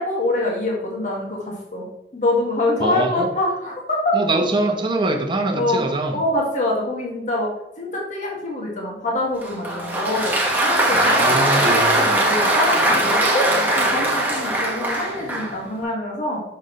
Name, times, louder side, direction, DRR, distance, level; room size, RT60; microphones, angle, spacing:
voice 1, 0.0-1.9 2.1-4.2 5.6-5.8 6.1-7.5 7.8-13.5 13.8-16.4, left 1 dB, 45° left, -2 dB, 1.8 m, -25 dB
voice 2, 2.8-3.3 4.1-6.2 10.9-12.2, right 2 dB, 25° right, 3 dB, 0.9 m, -23 dB
Applause, 9.4-15.6, right 1 dB, 10° right, 1.2 m, -20 dB
6.6 x 6.4 x 3.2 m, 0.84 s
head